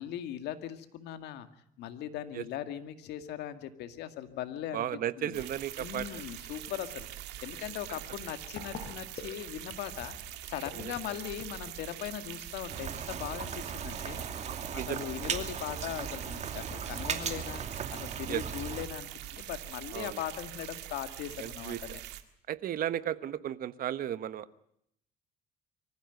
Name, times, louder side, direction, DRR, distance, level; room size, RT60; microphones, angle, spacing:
voice 1, 0.0-1.5 1.8-4.9 5.1-5.5 5.8-10.2 10.5-14.2 14.7-22.0, left 11 dB, 80° left, 9 dB, 2.1 m, -39 dB
voice 2, 4.7-6.2 10.8-10.9 14.7-15.0 18.3-18.4 19.9-20.2 21.4-21.8 22.5-24.5, right 11 dB, 60° right, 14 dB, 1.2 m, -34 dB
sound 1, 5.3-22.2, right 14 dB, 85° right, 1.9 m, -44 dB
sound 2, 6.4-19.7, left 5 dB, 50° left, 5.7 m, -53 dB
Rain, 12.7-18.9, right 7 dB, 45° right, 2.6 m, -37 dB
24.5 x 15.0 x 9.3 m, 0.72 s
cardioid pair, 110°, 17 cm